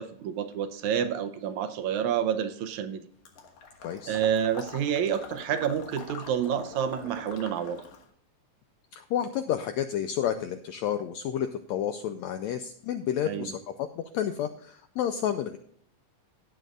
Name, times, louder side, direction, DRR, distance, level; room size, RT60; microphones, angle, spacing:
voice 1, 0.0-3.0 4.1-7.8 13.2-13.5, right 9 dB, 75° right, 9 dB, 1.9 m, -29 dB
Water / Liquid, 3.3-8.1, left 5 dB, 60° left, 2.6 m, -44 dB
voice 2, 3.8-4.2 8.9-15.6, left 9 dB, 85° left, 8 dB, 1.6 m, -30 dB
17.5 x 7.6 x 2.4 m, 0.64 s
omnidirectional pair, 3.8 m